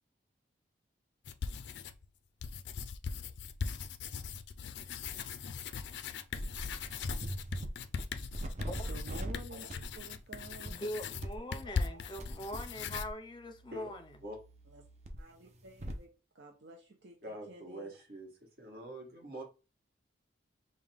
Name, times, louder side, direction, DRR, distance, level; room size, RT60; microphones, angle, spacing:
sound 1, 1.2-2.0 2.4-13.1, left 5 dB, 70° left, 0.4 m, -40 dB
sound 2, 6.3-7.7 8.0-9.3 9.7-10.0 10.5-10.7 11.1-12.7 12.9-16.0, right 1 dB, 35° right, 0.6 m, -42 dB
voice 1, 8.9-10.8 11.9-12.1 14.7-14.8 15.2-18.0, right 2 dB, 70° right, 0.7 m, -51 dB
voice 2, 10.7-14.2, equal, 25° left, 0.6 m, -42 dB
voice 3, 17.2-18.3 18.6-19.4, equal, 55° right, 1.4 m, -44 dB
5.3 x 2.2 x 3.5 m
head